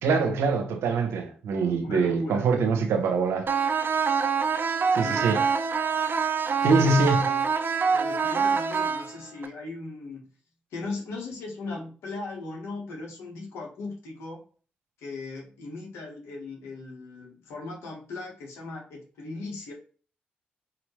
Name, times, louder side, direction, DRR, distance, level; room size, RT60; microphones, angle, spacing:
voice 1, 0.0-3.5 4.9-5.4 6.6-7.2, right 4 dB, 80° right, 0.8 m, -24 dB
voice 2, 1.8-2.5 4.9-5.4 6.6-7.5 7.9-10.3 10.7-14.4 15.0-19.7, left 3 dB, 80° left, 1.4 m, -38 dB
sound 1, 3.5-9.5, right 6 dB, 50° right, 0.5 m, -25 dB
4.0 x 3.0 x 3.2 m
hypercardioid pair, 40°, 4 cm